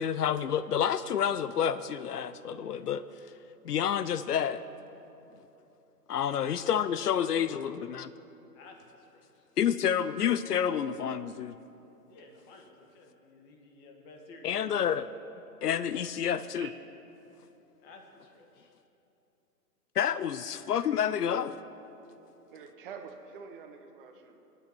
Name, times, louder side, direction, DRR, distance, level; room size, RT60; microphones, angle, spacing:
voice 1, 0.0-3.0 3.6-4.6 6.1-8.1 9.6-11.5 14.4-15.1 15.6-16.7 20.0-21.6, left 8 dB, 70° left, 14 dB, 0.6 m, -29 dB
voice 2, 8.5-9.5 12.1-15.0 17.8-18.7, left 3 dB, 20° left, 3 dB, 1.3 m, -54 dB
voice 3, 22.5-24.4, right 6 dB, 35° right, 5 dB, 1.1 m, -46 dB
23.0 x 9.0 x 4.5 m, 3.0 s
hypercardioid pair, 135°, 48 cm